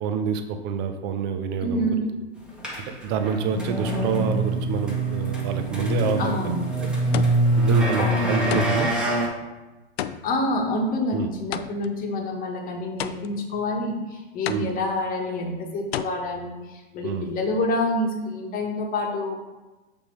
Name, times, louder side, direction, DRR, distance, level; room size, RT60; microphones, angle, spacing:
voice 1, 0.0-1.9 3.0-6.5 6.8-6.9 7.6-8.9 11.1-11.3 14.5-14.7 17.0-17.3, right 7 dB, 30° right, 8 dB, 0.7 m, -27 dB
voice 2, 1.6-2.0 6.2-7.0 8.0-8.3 10.2-19.3, left 1 dB, 25° left, 1 dB, 1.3 m, -27 dB
sound 1, 2.6-9.3, right 1 dB, 5° right, 1.2 m, -24 dB
sound 2, 7.1-7.7 8.5-9.0 10.0-12.0 13.0-13.6 14.5-15.1 15.9-16.0, left 11 dB, 70° left, 0.5 m, -32 dB
6.8 x 3.5 x 4.5 m, 1.1 s
hypercardioid pair, 115°, 33 cm